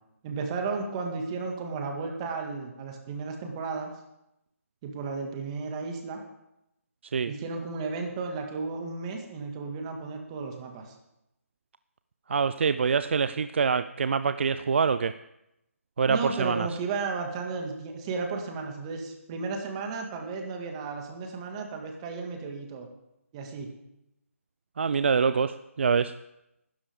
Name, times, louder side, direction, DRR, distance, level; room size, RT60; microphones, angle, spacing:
voice 1, 0.2-3.9 4.8-6.2 7.3-10.9 16.1-22.9 23.3-23.7, right 4 dB, 25° right, 3 dB, 2.2 m, -34 dB
voice 2, 12.3-15.1 16.0-16.7 24.8-26.1, right 5 dB, 50° right, 12 dB, 0.5 m, -25 dB
19.0 x 12.5 x 3.7 m, 0.85 s
figure-of-eight pair, 155°, 8 cm